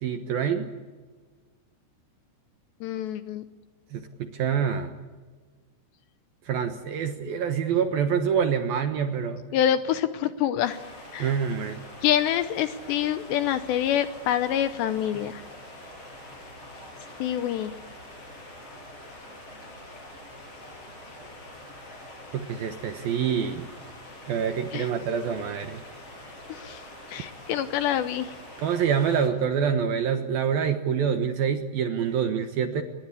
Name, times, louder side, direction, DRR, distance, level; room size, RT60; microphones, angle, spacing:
voice 1, 0.0-0.7 3.9-4.9 6.5-9.4 11.2-11.8 22.3-23.6 24.3-25.8 28.6-32.8, right 7 dB, 65° right, 7 dB, 2.4 m, -26 dB
voice 2, 2.8-3.4 9.5-10.8 11.1-11.3 12.0-15.4 17.2-17.7 24.7-24.9 26.5-28.3, left 10 dB, 75° left, 11 dB, 2.7 m, -26 dB
sound 1, 10.6-29.3, left 1 dB, 30° left, 7.6 m, -45 dB
26.5 x 21.5 x 8.4 m, 1.4 s
omnidirectional pair, 5.7 m